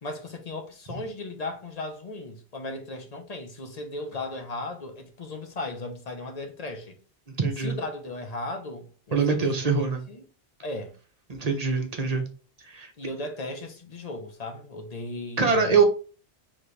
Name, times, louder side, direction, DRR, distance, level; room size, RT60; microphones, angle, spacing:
voice 1, 0.0-7.0 7.6-10.2 10.6-11.0 13.0-15.8, left 2 dB, 40° left, 0.9 m, -36 dB
voice 2, 7.4-7.8 9.1-10.0 11.3-12.2 12.7-12.9 15.4-15.8, right 5 dB, 40° right, 0.8 m, -23 dB
4.3 x 3.1 x 3.3 m
omnidirectional pair, 1.1 m